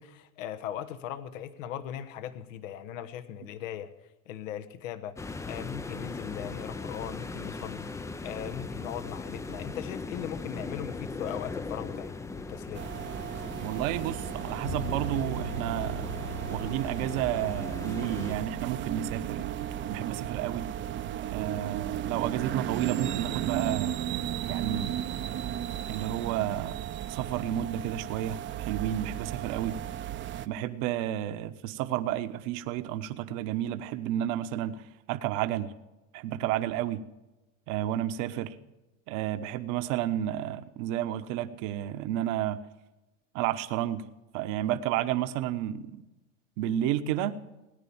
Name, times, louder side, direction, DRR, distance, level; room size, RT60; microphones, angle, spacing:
voice 1, 0.0-3.9 4.3-5.2 5.5-12.9, left 10 dB, 75° left, 11 dB, 1.2 m, -39 dB
sound 1, 5.2-18.3, left 3 dB, 10° left, 0.5 m, -39 dB
sound 2, 12.7-30.5, right 11 dB, 30° right, 0.7 m, -35 dB
voice 2, 13.6-16.1 16.5-19.4 19.9-20.7 21.3-23.9 24.5-25.1 25.9-26.8 27.1-29.8 30.4-35.7 36.1-37.0 37.7-38.6 39.1-42.6 43.3-44.0 44.3-46.0 46.6-47.4, right 12 dB, 55° right, 10 dB, 1.1 m, -31 dB
sound 3, 14.6-29.1, right 2 dB, 55° left, 2.1 m, -43 dB
18.5 x 10.0 x 7.1 m, 1.1 s
hypercardioid pair, 110°, 39 cm